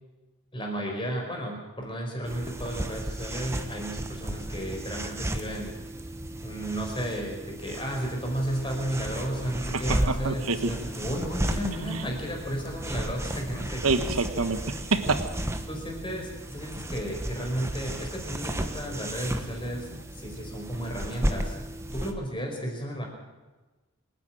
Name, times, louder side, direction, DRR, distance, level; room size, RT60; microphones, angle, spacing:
voice 1, 0.5-5.8 6.4-13.9 15.7-21.6 21.9-23.1, right 1 dB, 20° left, 1 dB, 5.1 m, -33 dB
sound 1, 2.2-22.1, right 1 dB, 10° right, 1.2 m, -34 dB
voice 2, 9.7-10.7 11.8-12.0 13.8-15.2, right 3 dB, 80° right, 9 dB, 1.4 m, -27 dB
27.0 x 10.5 x 9.2 m, 1.2 s
head